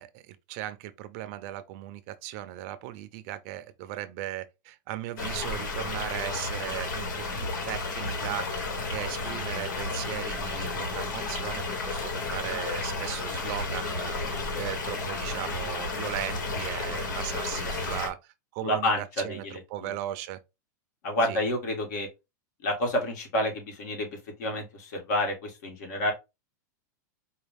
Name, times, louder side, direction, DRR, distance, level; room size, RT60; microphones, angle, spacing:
voice 1, 0.0-20.4 21.2-21.4, right 14 dB, 50° right, 0.5 m, -37 dB
sound 1, 5.2-18.1, left 3 dB, 90° left, 1.4 m, -32 dB
voice 2, 17.5-17.8 18.6-19.9 21.0-22.1 22.6-26.1, left 1 dB, 65° left, 1.8 m, -29 dB
4.6 x 2.3 x 3.5 m
supercardioid pair, 140°, 10 cm